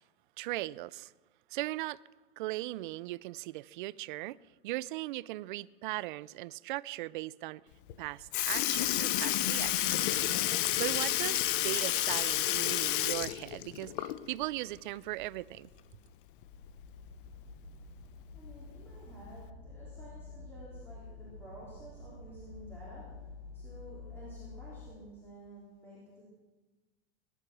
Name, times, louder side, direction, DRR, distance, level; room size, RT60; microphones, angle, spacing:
voice 1, 0.4-1.1 1.5-2.0 2.4-4.4 4.6-7.6 8.0-10.4 10.8-15.7, right 18 dB, 55° right, 0.5 m, -38 dB
Sink (filling or washing) / Liquid, 7.9-8.0 8.3-14.4 14.8-14.9 16.4-16.5 17.5-17.6 18.4-18.6 19.4-19.5, left 14 dB, 60° left, 0.8 m, -30 dB
sound 1, 16.4-24.9, left 3 dB, 85° left, 4.8 m, -49 dB
voice 2, 18.3-23.3 23.5-26.2, equal, 10° left, 3.5 m, -52 dB
20.0 x 11.0 x 6.1 m
supercardioid pair, 165°, 30 cm